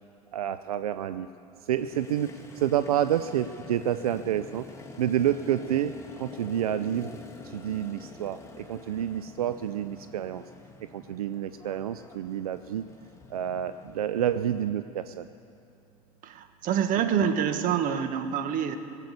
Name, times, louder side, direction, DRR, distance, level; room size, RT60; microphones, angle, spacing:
voice 1, 0.3-1.3 1.7-2.3 2.6-4.6 5.0-7.2 7.4-10.4 10.9-12.8 13.3-15.3, right 10 dB, 85° right, 11 dB, 0.4 m, -29 dB
Motorcycle, 1.7-14.7, left 4 dB, 15° left, 1.7 m, -47 dB
voice 2, 16.2-18.8, right 8 dB, 50° right, 8 dB, 1.2 m, -26 dB
18.0 x 8.2 x 8.1 m, 2.6 s
hypercardioid pair, 85°, 18 cm